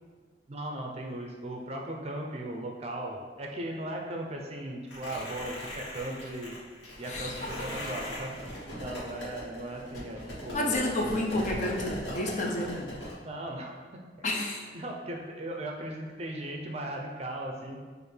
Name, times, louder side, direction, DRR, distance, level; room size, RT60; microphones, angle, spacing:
voice 1, 0.5-6.5 7.0-10.9 13.2-14.0 14.7-17.8, right 1 dB, 35° right, 0 dB, 0.5 m, -37 dB
sound 1, 4.9-13.1, equal, 70° left, 1.4 m, -40 dB
voice 2, 7.1-7.6 10.5-12.9 14.2-14.6, left 1 dB, 40° left, 0 dB, 0.5 m, -30 dB
6.7 x 2.5 x 3.2 m, 1.5 s
head